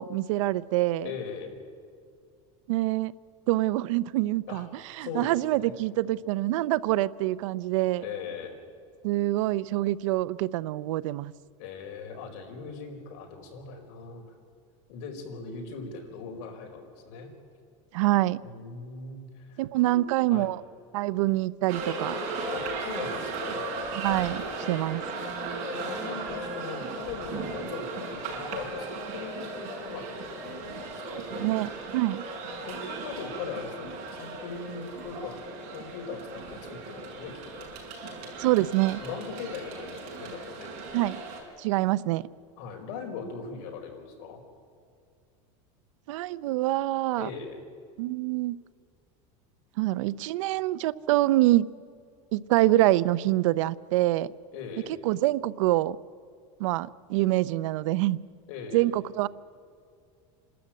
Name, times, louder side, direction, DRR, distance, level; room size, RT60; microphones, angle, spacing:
voice 1, 0.0-1.1 2.7-3.1 3.5-4.7 5.0-8.0 9.0-11.3 17.9-18.4 19.6-20.6 20.9-22.1 23.9-24.4 24.7-25.0 31.1-32.2 38.4-39.0 40.9-41.2 41.6-42.2 46.1-47.3 48.0-48.5 49.8-51.7 52.3-54.3 55.0-56.0 56.6-58.2 58.7-59.3, right 16 dB, 85° right, 18 dB, 0.6 m, -25 dB
voice 2, 1.0-1.6 4.5-4.7 5.0-5.7 8.0-8.6 11.6-14.3 14.9-17.3 18.4-20.0 20.3-20.5 22.5-23.6 25.7-31.5 32.6-35.4 35.7-37.7 39.0-40.9 42.6-44.4 47.2-47.6 54.5-55.0 58.5-58.9, left 5 dB, 70° left, 3 dB, 4.7 m, -40 dB
sound 1, 21.7-41.4, right 3 dB, 50° right, 6.2 m, -36 dB
27.5 x 13.0 x 9.1 m, 2.3 s
supercardioid pair, 150°, 16 cm